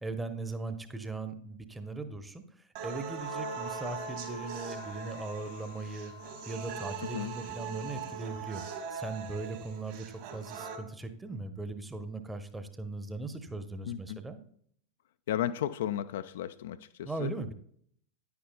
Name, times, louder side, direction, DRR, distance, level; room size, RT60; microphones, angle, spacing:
voice 1, 0.0-14.4 17.0-17.5, right 3 dB, 10° right, 0.8 m, -39 dB
sound 1, 2.8-10.8, right 6 dB, 50° right, 1.7 m, -41 dB
sound 2, 3.2-9.7, left 8 dB, 90° left, 1.3 m, -51 dB
voice 2, 13.9-14.2 15.3-17.3, left 11 dB, 55° left, 0.3 m, -34 dB
10.0 x 9.5 x 2.2 m
figure-of-eight pair, 90°, 0 cm